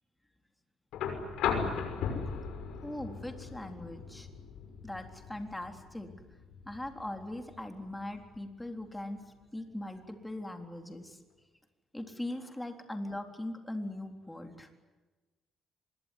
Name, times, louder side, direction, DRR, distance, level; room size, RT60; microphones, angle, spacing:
sound 1, 0.9-9.0 10.4-10.5, left 6 dB, 80° left, 6.2 m, -38 dB
voice 1, 2.8-4.3 4.8-6.1 6.7-9.3 9.5-11.2 11.9-14.7, left 1 dB, 10° left, 4 dB, 3.7 m, -40 dB
25.0 x 22.0 x 9.9 m, 1.2 s
cardioid pair, 115°, 0 cm